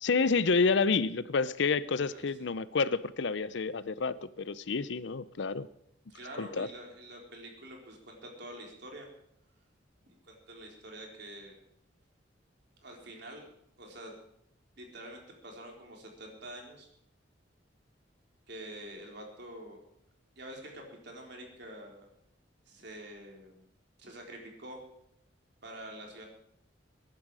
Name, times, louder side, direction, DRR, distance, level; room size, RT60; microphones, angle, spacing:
voice 1, 0.0-5.7 6.4-6.7, left 4 dB, 65° left, 17 dB, 0.6 m, -29 dB
voice 2, 6.1-9.1 10.2-11.6 12.8-13.4 13.8-14.2 14.8-16.9 18.5-19.8 20.4-22.1 22.7-23.7 24.0-24.8 25.6-26.3, right 1 dB, 60° right, 1 dB, 4.0 m, -46 dB
21.5 x 11.5 x 4.9 m, 0.74 s
head